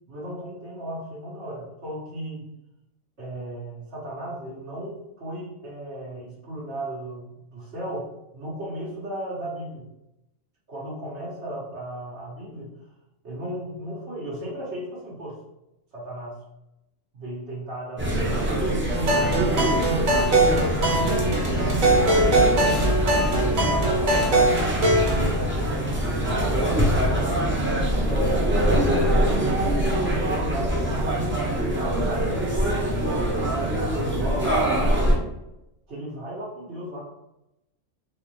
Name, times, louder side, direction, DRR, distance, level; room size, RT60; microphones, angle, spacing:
voice 1, 0.1-2.5 3.2-9.8 10.7-12.7 13.2-15.4 15.9-16.4 17.1-18.6 19.1-19.9 20.1-20.9 21.2-22.5 23.3-24.8 25.1-27.4 28.0-31.4 31.7-34.7 35.9-37.0, right 1 dB, 55° right, -6 dB, 1.6 m, -35 dB
sound 1, 18.0-35.2, right 1 dB, 15° right, 0.4 m, -23 dB
sound 2, 18.9-25.2, right 1 dB, 85° right, 1.4 m, -22 dB
3.9 x 2.5 x 3.1 m, 0.90 s
omnidirectional pair, 1.4 m